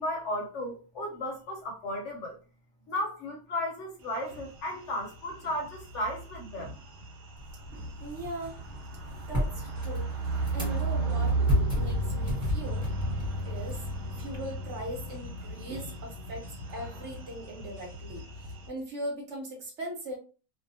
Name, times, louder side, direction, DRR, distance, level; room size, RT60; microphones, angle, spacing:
voice 1, 0.0-2.4 2.9-6.7, left 1 dB, 65° left, 0.8 m, -34 dB
sound 1, 4.1-18.7, right 2 dB, 75° right, 1.2 m, -34 dB
sound 2, 7.4-14.4, left 1 dB, 5° right, 1.0 m, -35 dB
voice 2, 7.7-8.5 9.3-10.1 10.5-11.3 11.8-12.8 13.4-13.8 14.2-16.4 16.7-20.2, right 1 dB, 60° right, 1.0 m, -40 dB
sound 3, 7.8-18.9, equal, 25° right, 1.3 m, -48 dB
2.7 x 2.0 x 2.6 m
omnidirectional pair, 1.5 m